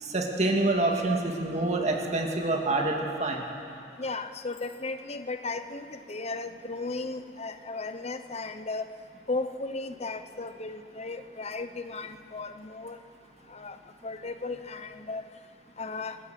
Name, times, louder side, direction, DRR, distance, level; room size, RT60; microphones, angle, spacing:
voice 1, 0.0-3.5, right 2 dB, 35° right, 1 dB, 2.1 m, -27 dB
voice 2, 4.0-8.9 9.3-13.0 13.5-13.8 14.0-15.2 15.8-16.2, left 3 dB, 35° left, 9 dB, 0.9 m, -35 dB
28.5 x 13.5 x 7.7 m, 2.7 s
head